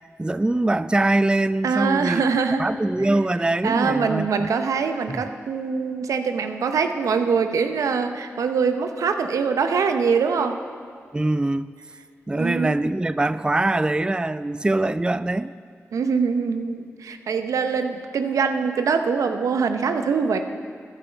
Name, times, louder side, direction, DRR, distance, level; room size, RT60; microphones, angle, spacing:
voice 1, 0.2-2.2 2.6-4.5 5.1-5.2 11.1-11.7 12.3-15.5, right 2 dB, 15° right, 15 dB, 0.3 m, -23 dB
voice 2, 1.6-2.6 3.0-3.1 3.6-10.6 12.3-12.7 15.9-20.4, right 5 dB, 90° right, 7 dB, 0.7 m, -23 dB
14.0 x 10.0 x 5.1 m, 2.1 s
cardioid pair, 45°, 5 cm